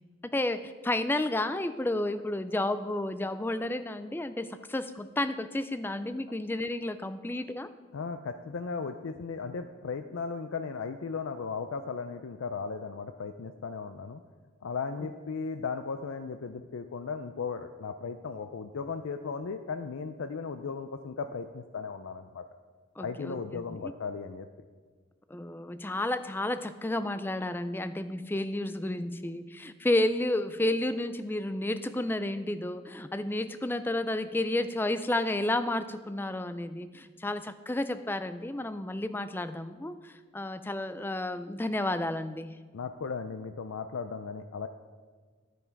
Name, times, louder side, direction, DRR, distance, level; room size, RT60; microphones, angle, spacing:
voice 1, 0.3-7.7 23.0-23.9 25.3-42.6, left 1 dB, 10° left, 11 dB, 0.3 m, -31 dB
voice 2, 7.9-14.2 14.6-22.4 23.0-24.5 42.7-44.7, left 5 dB, 85° left, 8 dB, 0.5 m, -36 dB
10.5 x 9.2 x 4.6 m, 1.5 s
head